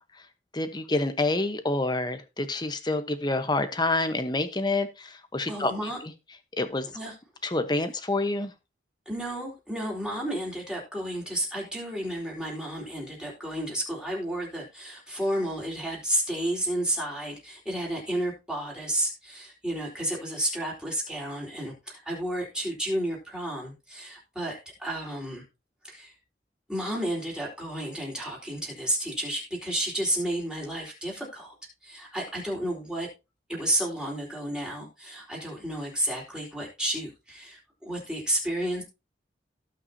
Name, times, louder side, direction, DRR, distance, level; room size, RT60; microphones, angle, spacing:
voice 1, 0.5-5.7 6.0-6.1 6.6-6.9 7.4-8.5, left 2 dB, 25° left, 10 dB, 1.0 m, -27 dB
voice 2, 5.5-6.0 6.9-7.1 9.1-25.4 25.8-26.1 26.7-31.5 31.8-33.1 33.5-38.8, right 1 dB, 5° right, -3 dB, 3.9 m, -31 dB
17.5 x 5.9 x 2.8 m, 0.26 s
head